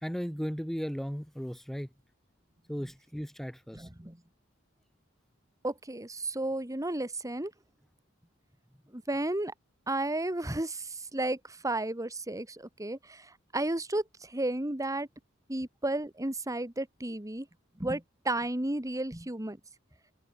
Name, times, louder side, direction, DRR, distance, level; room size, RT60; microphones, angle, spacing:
voice 1, 0.0-1.9 2.7-3.9, equal, ahead, 1.4 m, -36 dB
voice 2, 3.7-4.2 5.6-7.5 8.9-9.5 9.9-15.1 15.5-17.5 17.8-19.6, right 2 dB, 15° right, 1.8 m, -33 dB
head